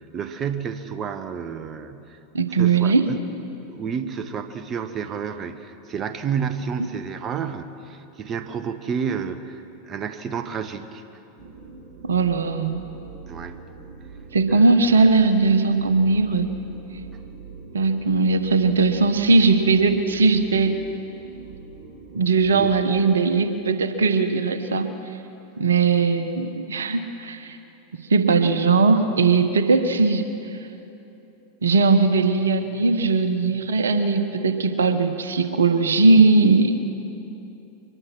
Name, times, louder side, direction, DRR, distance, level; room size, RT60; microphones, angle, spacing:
voice 1, 0.0-2.2 2.5-3.2 3.7-11.0 13.3-13.6 14.5-14.7 22.5-22.7, right 7 dB, 35° right, 10 dB, 1.2 m, -30 dB
voice 2, 2.3-3.1 12.0-12.8 14.3-16.5 17.7-20.8 22.1-24.9 25.6-27.6 28.1-30.2 31.6-36.7, right 4 dB, 80° right, 9 dB, 1.2 m, -19 dB
sound 1, 11.4-23.0, right 4 dB, 50° right, 2.9 m, -42 dB
24.0 x 20.5 x 6.1 m, 2.9 s
hypercardioid pair, 90°, 0 cm